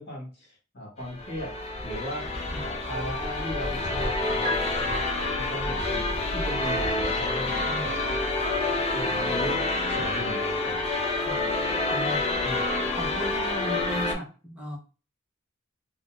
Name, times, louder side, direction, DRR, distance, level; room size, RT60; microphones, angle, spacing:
voice 1, 0.0-1.5 1.8-2.2 2.6-5.0 5.4-8.1 8.9-10.9 12.4-12.6, equal, 60° left, -2 dB, 1.3 m, -37 dB
sound 1, 1.0-14.1, left 2 dB, 30° left, 0.6 m, -28 dB
Piano, 4.4-6.4 7.7-7.8, right 1 dB, 40° right, 0.7 m, -37 dB
voice 2, 7.6-8.0 11.2-11.5 11.9-12.3 12.9-14.8, equal, 5° right, -3 dB, 0.8 m, -37 dB
3.8 x 2.1 x 2.3 m, 0.35 s
head